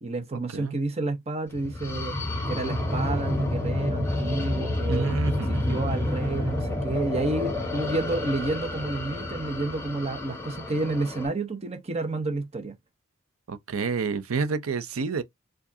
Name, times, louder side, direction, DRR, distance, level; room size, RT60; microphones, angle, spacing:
voice 1, 0.0-2.1 2.5-5.1 5.7-12.7, right 2 dB, 30° right, 0.8 m, -30 dB
sound 1, 1.5-11.3, left 1 dB, 10° left, 1.2 m, -29 dB
voice 2, 4.9-5.8 13.5-15.2, right 4 dB, 85° right, 0.6 m, -29 dB
4.7 x 2.5 x 2.7 m
head